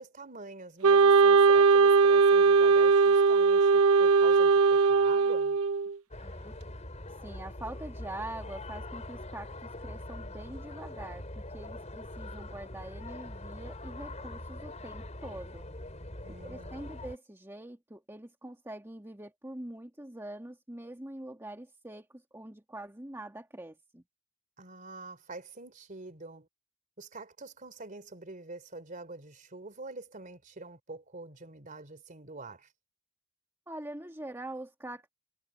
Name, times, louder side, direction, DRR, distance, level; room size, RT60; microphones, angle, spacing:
voice 1, 0.0-5.6 16.2-17.0 24.6-26.5 27.0-32.7, right 3 dB, 35° right, 3.3 m, -46 dB
Wind instrument woodwind instrument, 0.8-5.9, right 4 dB, 75° right, 0.9 m, -20 dB
sound 1, 6.1-17.2, left 1 dB, 30° left, 4.5 m, -43 dB
voice 2, 6.2-6.5 7.2-15.7 16.4-24.0 33.7-35.1, right 1 dB, 10° right, 1.9 m, -44 dB
head